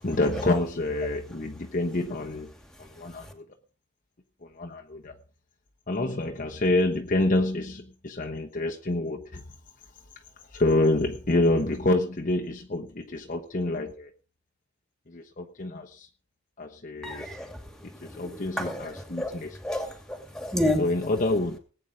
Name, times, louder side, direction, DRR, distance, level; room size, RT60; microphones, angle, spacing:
voice 1, 0.0-2.5 2.8-3.4 4.6-5.1 5.9-9.4 10.5-14.1 15.1-16.1 16.6-17.3 18.0-19.6 20.8-21.6, left 2 dB, 40° left, 1.1 m, -27 dB
voice 2, 17.0-17.5 18.2-18.3 18.6-18.9 19.2-19.3 19.6-20.8, left 1 dB, 5° left, 2.7 m, -29 dB
19.0 x 9.1 x 5.1 m
head